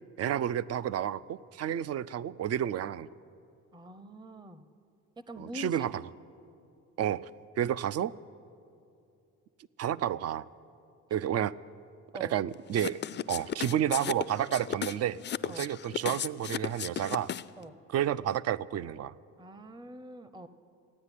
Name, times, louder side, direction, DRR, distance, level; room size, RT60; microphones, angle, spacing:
voice 1, 0.2-3.1 5.4-6.0 7.0-7.3 7.6-8.1 9.8-10.5 11.1-11.5 12.2-13.0 13.3-15.2 15.4-17.3 17.9-19.1, right 10 dB, 55° right, 18 dB, 0.4 m, -30 dB
voice 2, 3.7-4.7 5.2-5.9 12.1-12.4 13.3-13.9 15.5-15.7 17.6-17.8 19.4-20.5, equal, 15° right, 13 dB, 0.6 m, -45 dB
sound 1, 12.7-17.6, left 10 dB, 40° left, 0.4 m, -35 dB
14.5 x 9.6 x 9.9 m, 2.6 s
cardioid pair, 90°, 30 cm